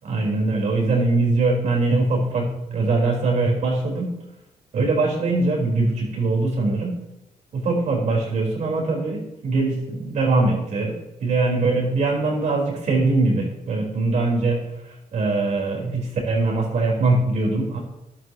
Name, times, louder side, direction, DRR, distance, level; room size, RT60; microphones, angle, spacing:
voice 1, 0.0-4.1 4.7-7.0 7.5-10.9 11.2-14.6 15.1-17.8, right 3 dB, 65° right, -1 dB, 4.4 m, -22 dB
14.5 x 11.0 x 3.1 m, 0.88 s
cardioid pair, 90°, 13 cm